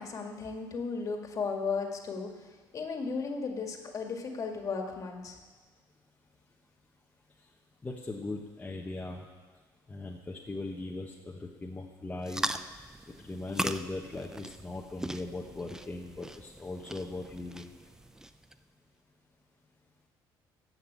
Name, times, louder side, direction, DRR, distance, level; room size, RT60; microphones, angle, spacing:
voice 1, 0.0-5.4, left 4 dB, 40° left, 3 dB, 1.9 m, -35 dB
voice 2, 7.8-9.3 9.9-12.4 13.2-17.7, left 2 dB, 15° left, -1 dB, 1.1 m, -39 dB
sound 1, 12.2-18.6, right 1 dB, 5° right, 0.5 m, -39 dB
15.0 x 5.9 x 8.2 m, 1.4 s
cardioid pair, 120°, 9 cm